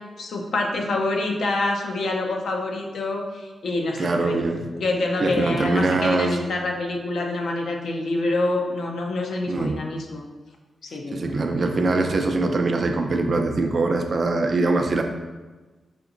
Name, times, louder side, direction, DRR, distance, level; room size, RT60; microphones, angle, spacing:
voice 1, 0.2-4.4 4.8-10.2 10.8-11.2, left 2 dB, 80° left, 1 dB, 0.6 m, -26 dB
voice 2, 4.0-4.7 5.2-6.4 9.5-9.8 11.1-15.0, right 3 dB, 50° right, 4 dB, 0.4 m, -22 dB
5.0 x 2.9 x 2.5 m, 1.3 s
wide cardioid pair, 105°, 0 cm